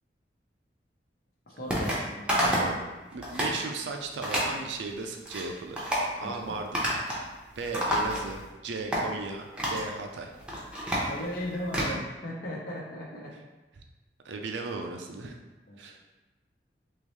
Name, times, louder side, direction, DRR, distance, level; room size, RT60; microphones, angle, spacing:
voice 1, 1.5-2.8 6.2-6.6 10.8-13.3 15.7-16.0, equal, 55° left, -3 dB, 0.9 m, -37 dB
sound 1, 1.7-2.0 2.3-2.8 3.1-3.6 4.2-4.5 5.0-5.4 5.8-6.1 6.7-7.3 7.5-8.5 8.9-9.0 9.6-9.9 10.3-11.9, equal, 5° right, 0.7 m, -29 dB
voice 2, 2.4-2.8 3.1-6.9 7.6-10.4 13.8-13.9 14.2-15.4 15.8-16.0, right 3 dB, 90° right, 4 dB, 0.5 m, -36 dB
3.7 x 3.1 x 3.0 m, 1.1 s
head